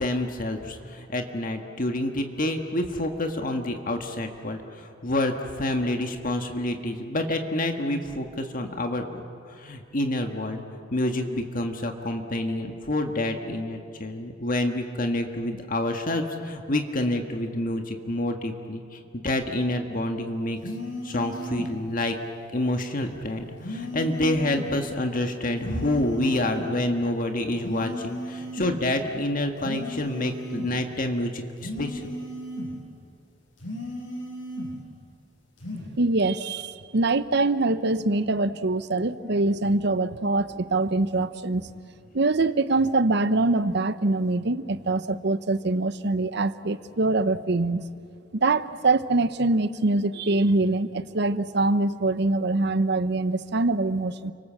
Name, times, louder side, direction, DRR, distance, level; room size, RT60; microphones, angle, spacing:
voice 1, 0.0-10.6 10.9-20.6 21.0-22.1 22.5-32.1, left 1 dB, 45° left, 4 dB, 1.7 m, -28 dB
sound 1, 20.6-21.7 23.6-24.7 25.6-26.7 27.6-28.7 29.6-30.8 31.6-32.8 33.6-34.8 35.6-35.9, equal, 90° left, 8.0 m, -35 dB
voice 2, 36.0-41.7 42.1-47.8 48.3-54.3, right 2 dB, 60° right, 13 dB, 0.8 m, -24 dB
30.0 x 25.0 x 7.5 m, 2.5 s
head